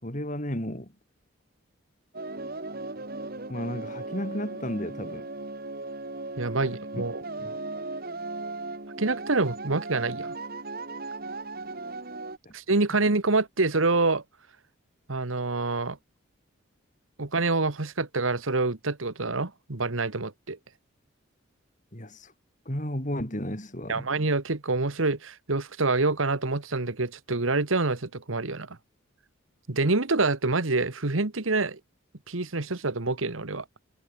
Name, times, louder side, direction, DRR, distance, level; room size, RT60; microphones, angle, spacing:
voice 1, 0.0-0.9 3.5-5.3 6.6-7.0 7.4-7.6 12.4-12.5 21.9-22.3 22.7-24.1, equal, 40° left, 5.2 m, -33 dB
sound 1, 2.1-12.4, right 2 dB, 45° right, 2.2 m, -37 dB
voice 2, 6.4-7.2 9.0-10.3 12.5-14.2 15.1-16.0 17.2-20.6 23.9-28.8 29.7-31.8 32.3-33.6, right 3 dB, 75° right, 1.6 m, -26 dB
head